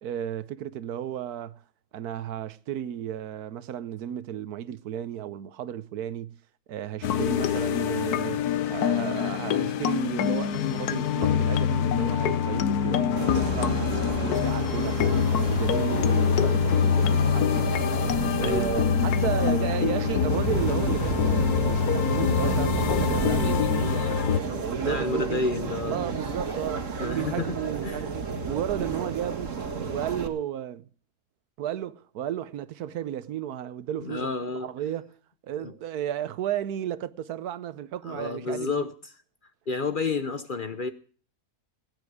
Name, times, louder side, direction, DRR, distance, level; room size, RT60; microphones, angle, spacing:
voice 1, 0.0-1.6 1.9-6.4 6.7-15.2 15.5-17.9 18.4-24.3 24.5-25.4 25.9-29.5 29.9-30.9 31.6-34.3 34.6-35.2 35.4-38.9, right 10 dB, 85° right, 1.3 m, -33 dB
sound 1, 7.0-24.4, left 8 dB, 85° left, 1.3 m, -25 dB
sound 2, 13.2-30.3, right 5 dB, 55° right, 1.9 m, -31 dB
voice 2, 24.4-26.0 27.0-28.1 34.0-34.7 35.6-35.7 38.1-39.1 39.7-40.9, left 4 dB, 40° left, 0.8 m, -30 dB
17.0 x 9.7 x 4.8 m
omnidirectional pair, 1.6 m